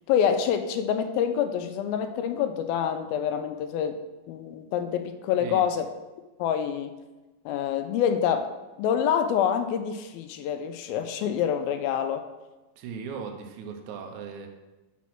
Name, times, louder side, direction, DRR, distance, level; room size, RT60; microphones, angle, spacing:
voice 1, 0.1-4.0 4.3-5.9 6.4-6.9 7.5-8.5 8.8-12.3, left 8 dB, 80° left, 9 dB, 2.3 m, -26 dB
voice 2, 12.8-14.5, right 6 dB, 75° right, 4 dB, 1.8 m, -37 dB
6.0 x 6.0 x 5.9 m, 1.1 s
omnidirectional pair, 4.5 m